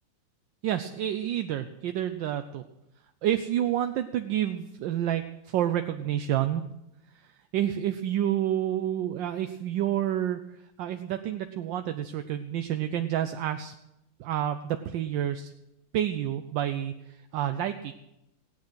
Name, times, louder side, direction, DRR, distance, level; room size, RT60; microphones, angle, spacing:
voice 1, 0.6-2.6 3.2-6.6 7.2-10.4 10.8-13.7 14.2-15.5 15.9-17.9, right 11 dB, 75° right, 8 dB, 1.3 m, -29 dB
17.5 x 9.4 x 6.2 m, 0.88 s
omnidirectional pair, 2.1 m